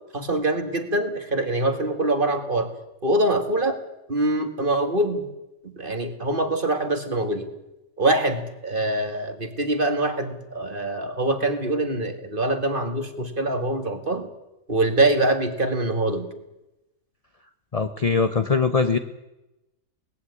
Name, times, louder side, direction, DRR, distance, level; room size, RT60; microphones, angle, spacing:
voice 1, 0.1-2.7 3.0-3.8 4.1-5.3 5.6-7.5 8.0-14.3 14.7-16.3, right 2 dB, 30° right, 8 dB, 2.2 m, -24 dB
voice 2, 17.7-19.0, left 5 dB, 30° left, 9 dB, 0.7 m, -21 dB
19.5 x 15.0 x 9.8 m, 0.96 s
omnidirectional pair, 1.7 m